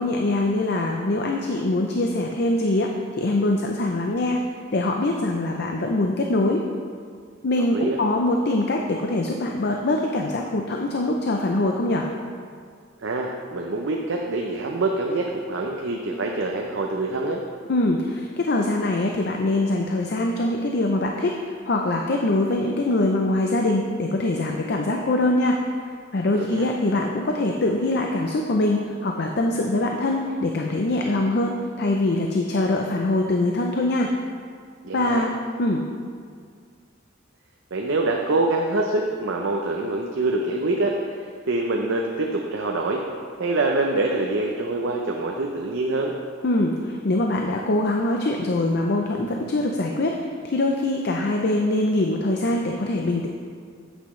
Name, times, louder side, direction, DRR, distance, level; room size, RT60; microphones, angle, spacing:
voice 1, 0.0-4.4 4.7-6.6 7.4-12.0 17.7-25.6 26.1-34.1 34.9-35.3 35.6-35.8 46.4-53.3, left 2 dB, 55° left, 2 dB, 0.5 m, -23 dB
voice 2, 7.6-8.0 13.0-17.4 26.3-26.7 34.8-35.2 37.7-43.0 43.4-46.1, right 2 dB, 70° right, 0 dB, 0.7 m, -25 dB
9.9 x 8.2 x 3.2 m, 2.1 s
head